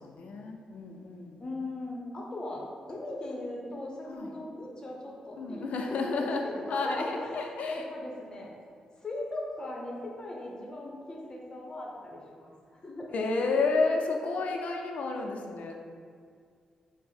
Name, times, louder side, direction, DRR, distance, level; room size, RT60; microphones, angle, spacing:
voice 1, 0.0-1.4 4.1-4.3 5.4-7.9 13.1-15.7, left 3 dB, 70° left, 2 dB, 0.5 m, -31 dB
voice 2, 1.4-5.7 6.0-8.6 9.0-13.1, left 1 dB, 35° left, -2 dB, 0.8 m, -39 dB
4.5 x 2.1 x 4.2 m, 2.2 s
cardioid pair, 80°, 2 cm